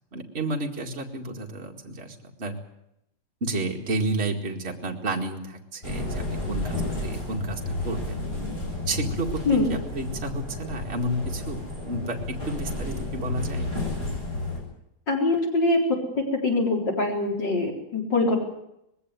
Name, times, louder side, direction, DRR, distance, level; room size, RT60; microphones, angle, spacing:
voice 1, 0.1-2.6 3.4-8.2 8.9-13.7, right 2 dB, 35° right, 1 dB, 2.3 m, -31 dB
sound 1, 5.8-14.6, left 2 dB, 30° left, 7.3 m, -32 dB
voice 2, 15.1-15.8 16.1-18.4, left 2 dB, 75° left, 1 dB, 4.8 m, -23 dB
20.5 x 16.5 x 9.4 m, 0.82 s
omnidirectional pair, 1.9 m